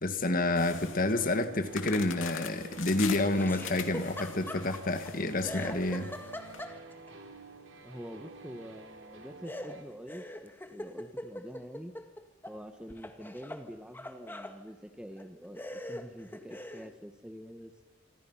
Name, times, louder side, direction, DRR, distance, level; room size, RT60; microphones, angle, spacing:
voice 1, 0.0-6.1, left 2 dB, 45° left, 9 dB, 2.0 m, -29 dB
sound 1, 0.6-6.6, left 7 dB, 85° left, 2.6 m, -43 dB
sound 2, 0.9-9.8, right 2 dB, 90° right, 3.5 m, -50 dB
Laughter, 3.3-5.1 5.4-7.1 9.5-12.6 12.9-14.6 15.2-15.3 15.6-16.9, left 1 dB, 10° left, 1.7 m, -42 dB
voice 2, 7.8-11.9 12.5-15.6 15.9-17.7, equal, 5° right, 8 dB, 1.4 m, -46 dB
26.5 x 25.5 x 5.8 m, 1.2 s
head